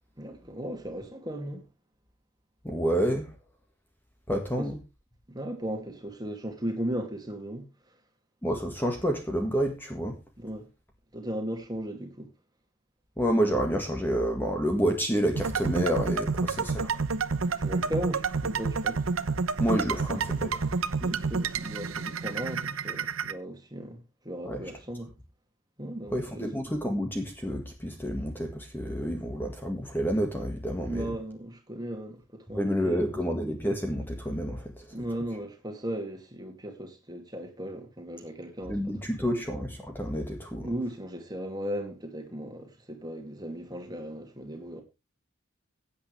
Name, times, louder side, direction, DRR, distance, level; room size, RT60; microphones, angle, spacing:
voice 1, 0.2-1.6 4.6-4.7 5.3-7.7 10.4-10.7 11.1-12.3 17.4-19.0 21.0-25.1 25.8-26.4 30.8-33.2 34.9-38.9 39.2-39.4 40.6-44.8, right 1 dB, 20° right, 2.6 m, -37 dB
voice 2, 2.6-3.3 4.3-4.8 8.4-10.2 13.2-17.0 19.6-20.7 24.5-24.6 26.1-31.1 32.6-34.9 38.7-40.7, equal, 10° left, 1.8 m, -29 dB
sound 1, 15.3-23.3, right 4 dB, 85° right, 0.9 m, -29 dB
16.5 x 8.8 x 3.4 m
head